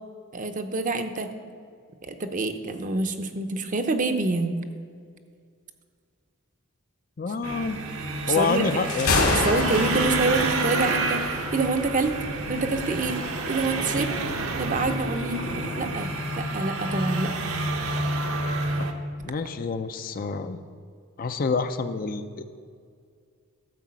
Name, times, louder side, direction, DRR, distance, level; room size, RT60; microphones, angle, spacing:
voice 1, 0.3-1.3 2.0-4.6 8.3-8.7 9.4-11.2 11.5-12.1 12.5-13.2 13.5-14.1 14.6-15.5 15.7-17.5, right 3 dB, 35° right, 7 dB, 0.7 m, -26 dB
voice 2, 7.2-7.8 8.3-9.2 19.2-20.6 21.2-22.4, left 4 dB, 40° left, 9 dB, 0.5 m, -27 dB
sound 1, 7.4-18.9, right 2 dB, 65° right, 0.9 m, -29 dB
Thunder, 8.7-15.9, left 2 dB, 70° left, 2.2 m, -30 dB
12.5 x 5.0 x 7.5 m, 2.1 s
head